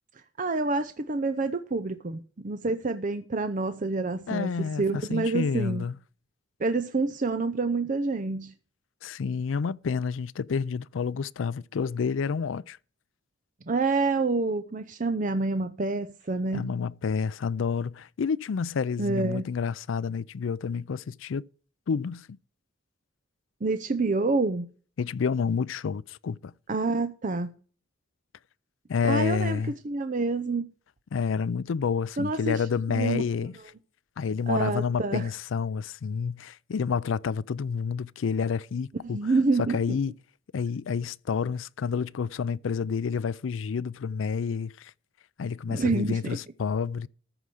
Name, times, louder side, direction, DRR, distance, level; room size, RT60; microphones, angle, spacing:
voice 1, 0.4-5.8 6.6-8.5 13.7-16.8 19.0-19.5 23.6-24.7 26.7-27.5 29.1-29.6 29.8-30.7 32.2-33.2 34.5-35.3 39.0-40.0 45.7-46.4, right 3 dB, 40° right, 0.6 m, -28 dB
voice 2, 4.3-5.9 9.0-12.8 16.5-21.4 21.9-22.3 25.0-26.5 28.9-29.7 31.1-33.6 34.2-39.2 39.6-40.1 40.5-44.9 45.4-47.1, left 6 dB, 80° left, 0.4 m, -29 dB
14.0 x 4.9 x 7.6 m
head